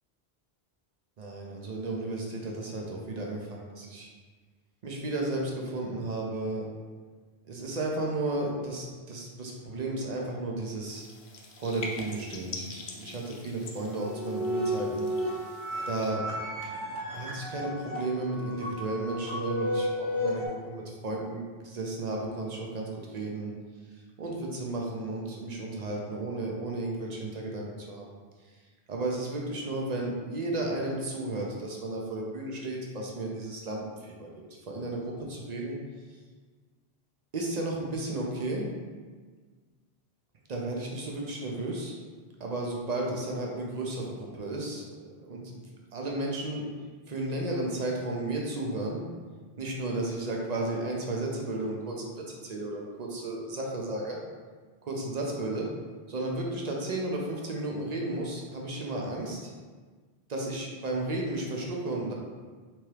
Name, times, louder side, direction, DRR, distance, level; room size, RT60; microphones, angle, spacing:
voice 1, 1.2-4.1 4.8-6.7 7.5-11.0 11.6-15.1 15.4-15.5 15.9-16.3 17.1-23.5 24.2-28.1 28.9-35.8 37.3-38.7 40.5-42.0 42.4-45.6 45.9-46.7 47.1-49.0 49.6-54.2 54.8-55.7 56.1-59.5 60.3-62.1, right 2 dB, 50° right, -1 dB, 0.6 m, -33 dB
sound 1, 10.9-16.1, left 3 dB, 60° left, 0.6 m, -44 dB
sound 2, 13.9-20.5, equal, 15° right, 0.8 m, -33 dB
3.4 x 3.0 x 3.2 m, 1.4 s
omnidirectional pair, 1.1 m